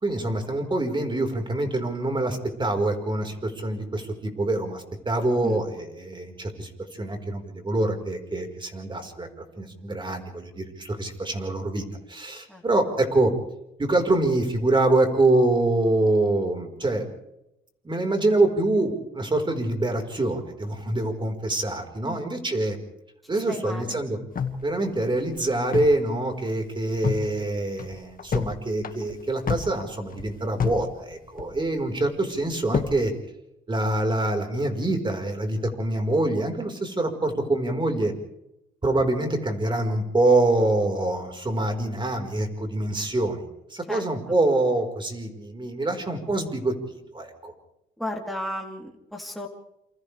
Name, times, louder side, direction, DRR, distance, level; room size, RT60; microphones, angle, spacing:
voice 1, 0.0-6.7 7.0-13.3 13.8-17.0 17.8-22.8 23.3-24.2 24.6-33.1 33.7-38.1 38.8-47.5, right 2 dB, 25° right, 4 dB, 4.7 m, -25 dB
voice 2, 23.5-24.0 43.9-44.4 48.0-49.5, left 1 dB, ahead, 0 dB, 3.6 m, -34 dB
sound 1, 24.4-26.1 26.3-26.4 26.8-27.3 27.7-28.5 28.8-30.9 31.1-31.8 32.3-33.0, left 6 dB, 45° left, 1.9 m, -29 dB
28.5 x 27.5 x 3.4 m, 0.85 s
cardioid pair, 90°, 20 cm